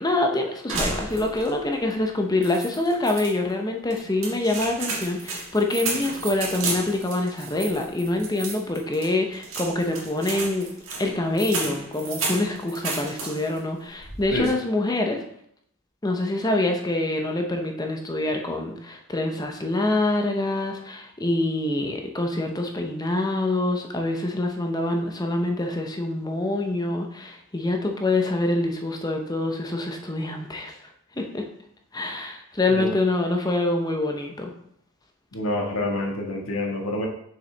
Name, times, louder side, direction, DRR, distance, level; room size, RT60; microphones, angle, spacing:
voice 1, 0.0-10.7 11.0-15.2 16.0-30.8 31.2-31.4 31.9-34.5, left 2 dB, 20° left, 3 dB, 0.7 m, -25 dB
sound 1, 0.7-1.6 1.9-2.0 2.4-3.3 3.9-13.6 13.9-14.5, right 3 dB, 65° right, 1.8 m, -32 dB
voice 2, 35.3-37.1, left 1 dB, 70° left, 0 dB, 1.5 m, -27 dB
6.6 x 5.7 x 3.3 m, 0.70 s
head